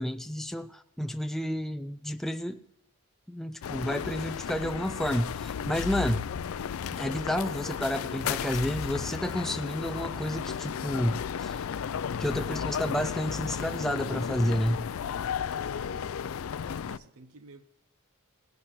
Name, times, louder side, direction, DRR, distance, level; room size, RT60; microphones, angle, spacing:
voice 1, 0.0-2.6 3.3-6.2 6.9-11.6 12.2-14.8, equal, ahead, 0.3 m, -30 dB
sound 1, 3.6-17.0, left 7 dB, 75° left, 0.4 m, -34 dB
voice 2, 15.3-16.2 16.8-17.6, right 3 dB, 90° right, 0.7 m, -53 dB
18.0 x 11.5 x 3.1 m
head